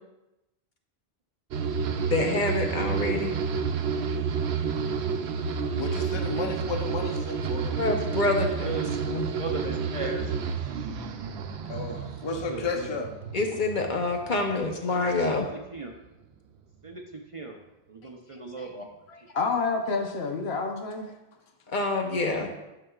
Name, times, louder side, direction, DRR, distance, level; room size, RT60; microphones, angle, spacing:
sound 1, 1.5-14.8 15.1-15.8, right 5 dB, 85° right, 0.8 m, -30 dB
voice 1, 2.1-3.3 7.8-9.2 13.3-15.5 21.7-22.5, left 2 dB, 50° left, 3 dB, 1.0 m, -27 dB
voice 2, 5.8-7.8 11.6-13.1, left 3 dB, 30° left, 4 dB, 0.6 m, -33 dB
voice 3, 8.6-10.3 12.2-12.9 15.3-15.9 16.8-17.6 17.9-18.9, right 3 dB, 40° right, 1 dB, 0.6 m, -38 dB
voice 4, 19.1-21.1, left 4 dB, 80° left, 3 dB, 1.1 m, -29 dB
10.5 x 5.9 x 2.4 m, 0.97 s
omnidirectional pair, 1.1 m